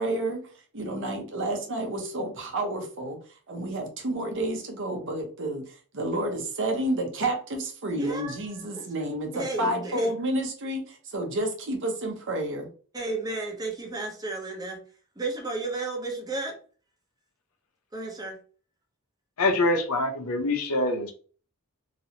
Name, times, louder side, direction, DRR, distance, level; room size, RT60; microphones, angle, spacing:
voice 1, 0.0-12.7, right 1 dB, 55° right, 3 dB, 0.9 m, -30 dB
voice 2, 7.9-8.4 8.7-8.8 9.3-10.1 12.9-14.8 15.2-16.6 17.9-18.4, right 3 dB, 15° right, 0 dB, 0.8 m, -33 dB
voice 3, 19.4-21.1, left 2 dB, 80° left, 4 dB, 0.7 m, -25 dB
3.0 x 2.7 x 2.8 m, 0.41 s
head